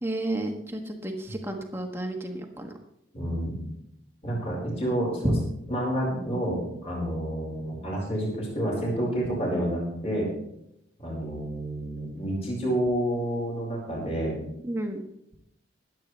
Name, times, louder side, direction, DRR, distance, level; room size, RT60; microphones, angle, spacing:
voice 1, 0.0-2.7 5.2-5.3 14.6-15.0, right 1 dB, 15° right, 3 dB, 1.5 m, -31 dB
voice 2, 3.1-3.6 4.2-5.3 5.7-10.3 11.0-14.4, right 1 dB, 35° left, -2 dB, 4.9 m, -29 dB
23.5 x 8.5 x 3.3 m, 0.80 s
head